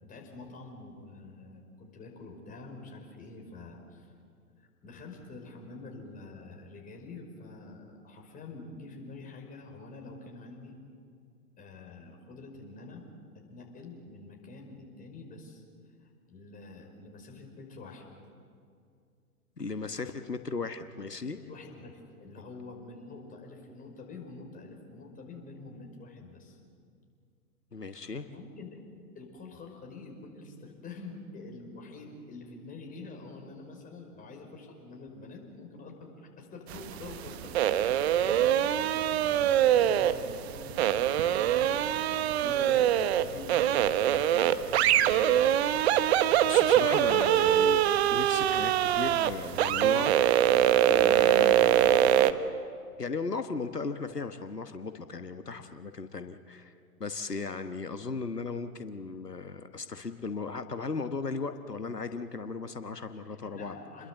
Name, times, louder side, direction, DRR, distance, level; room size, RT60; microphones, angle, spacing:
voice 1, 0.0-4.1 4.6-10.8 11.6-13.0 13.3-15.6 16.0-18.1 21.3-26.6 27.8-28.8 29.2-37.6 37.9-45.6 63.5-64.1, left 3 dB, 15° left, 1 dB, 5.3 m, -47 dB
voice 2, 19.6-21.4 27.7-28.3 46.5-47.8 48.1-50.1 50.6-52.5 53.0-56.7 57.0-63.8, left 4 dB, 90° left, 9 dB, 1.3 m, -36 dB
sound 1, 36.7-52.3, right 11 dB, 45° right, 1.1 m, -24 dB
28.5 x 21.5 x 8.1 m, 2.3 s
figure-of-eight pair, 110°, 46 cm